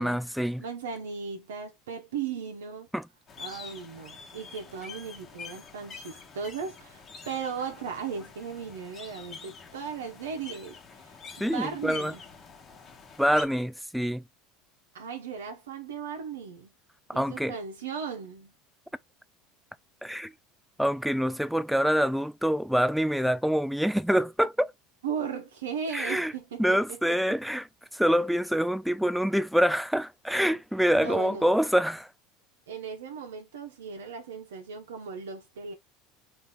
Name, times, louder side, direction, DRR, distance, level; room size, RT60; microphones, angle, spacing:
voice 1, 0.0-0.6 2.9-3.1 11.4-12.1 13.2-14.2 17.1-17.6 20.0-20.3 20.8-24.7 25.9-26.3 26.6-27.7 27.9-32.1, equal, ahead, 0.3 m, -26 dB
voice 2, 0.6-2.9 3.4-12.2 14.9-16.7 17.1-18.5 25.0-27.0 30.8-31.5 32.7-35.7, right 6 dB, 85° right, 0.8 m, -37 dB
sound 1, 3.3-13.4, left 5 dB, 30° left, 1.0 m, -46 dB
4.0 x 2.7 x 3.7 m
hypercardioid pair, 90°, 0 cm